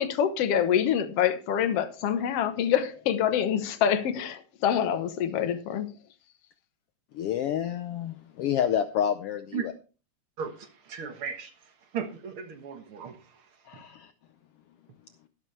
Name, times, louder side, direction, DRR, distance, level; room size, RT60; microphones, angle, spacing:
voice 1, 0.0-5.9, left 9 dB, 60° left, 1.8 m, -26 dB
voice 2, 7.1-9.7 13.7-14.1, left 9 dB, 85° left, 1.3 m, -29 dB
voice 3, 10.4-11.5 11.9-13.2 13.7-13.8, right 7 dB, 50° right, 1.9 m, -36 dB
12.5 x 12.0 x 3.3 m
omnidirectional pair, 3.5 m